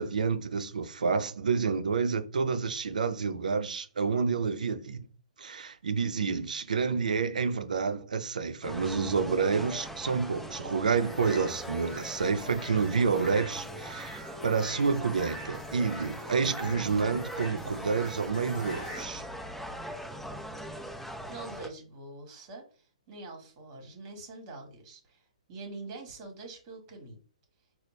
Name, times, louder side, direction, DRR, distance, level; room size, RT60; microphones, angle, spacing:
voice 1, 0.0-5.0 5.4-19.2, right 5 dB, 90° right, 0.6 m, -29 dB
sound 1, 8.6-21.7, equal, ahead, 0.6 m, -41 dB
sound 2, 11.0-19.0, equal, 20° left, 1.0 m, -44 dB
voice 2, 21.0-25.2 25.5-27.2, right 3 dB, 30° right, 1.4 m, -45 dB
4.1 x 2.1 x 3.1 m
hypercardioid pair, 160°, 4 cm